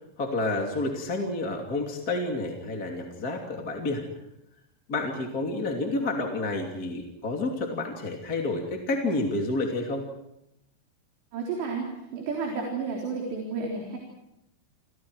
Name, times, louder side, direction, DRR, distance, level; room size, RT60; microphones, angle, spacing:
voice 1, 0.2-4.0 4.9-10.0, left 2 dB, 25° left, 1 dB, 2.6 m, -29 dB
voice 2, 11.3-14.0, right 4 dB, 85° right, -1 dB, 6.1 m, -31 dB
29.0 x 28.5 x 4.9 m, 0.83 s
omnidirectional pair, 4.9 m